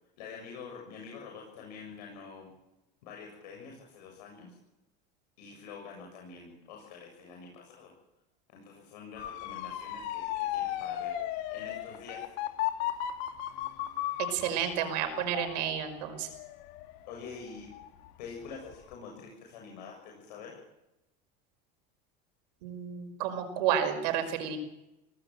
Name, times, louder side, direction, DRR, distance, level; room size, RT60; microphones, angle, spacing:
voice 1, 0.2-2.5 3.0-4.6 5.4-7.9 8.5-12.3 17.0-17.7 18.2-20.6, left 5 dB, 90° left, 0 dB, 7.3 m, -46 dB
Motor vehicle (road) / Siren, 9.2-18.1 18.5-18.9, left 12 dB, 60° left, 2.7 m, -36 dB
voice 2, 14.3-16.3 22.6-24.6, right 9 dB, 85° right, 7 dB, 5.4 m, -31 dB
25.0 x 18.5 x 7.7 m, 0.93 s
supercardioid pair, 145°, 21 cm